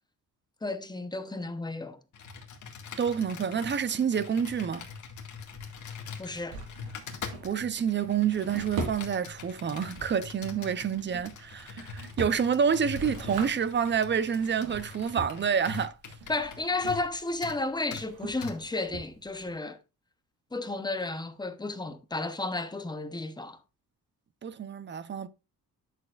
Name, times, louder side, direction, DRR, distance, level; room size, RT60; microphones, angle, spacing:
voice 1, 0.6-2.0 6.2-6.6 16.3-19.8 20.5-23.6, left 2 dB, 10° left, 0.9 m, -33 dB
Computer keyboard, 2.1-17.1 17.4-17.6 17.9-18.1 18.4-18.6, left 6 dB, 55° left, 2.0 m, -43 dB
voice 2, 3.0-4.9 7.4-15.9 24.4-25.3, right 7 dB, 30° right, 0.6 m, -28 dB
Drawer open or close, 4.4-19.6, right 3 dB, 85° right, 3.7 m, -42 dB
10.5 x 6.7 x 2.5 m
cardioid pair, 150°, 36 cm